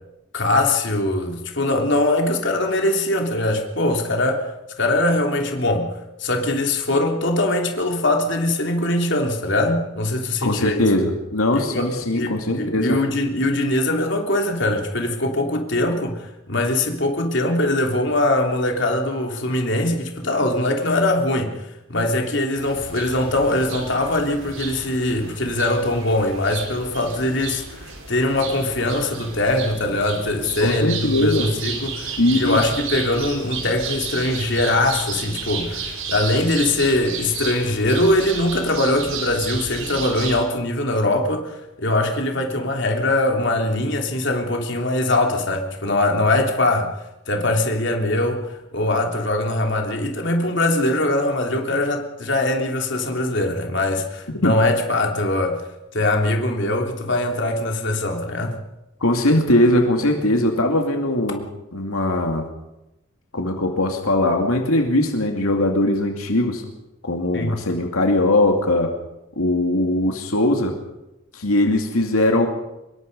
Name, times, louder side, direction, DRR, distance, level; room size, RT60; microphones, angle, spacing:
voice 1, 0.3-4.5 4.8-5.9 6.2-10.8 11.5-46.9 47.3-55.6 55.9-58.6 67.3-67.6, left 1 dB, 55° left, 2 dB, 3.2 m, -22 dB
voice 2, 10.4-13.0 30.6-31.5 32.2-32.6 54.4-54.6 59.0-61.4 61.7-62.5 63.3-66.6 67.0-68.9 69.4-70.7 71.3-72.5, left 1 dB, 85° left, 3 dB, 2.6 m, -20 dB
sound 1, 22.6-40.5, right 5 dB, 70° right, 5.5 m, -33 dB
25.5 x 22.0 x 5.4 m, 0.94 s
head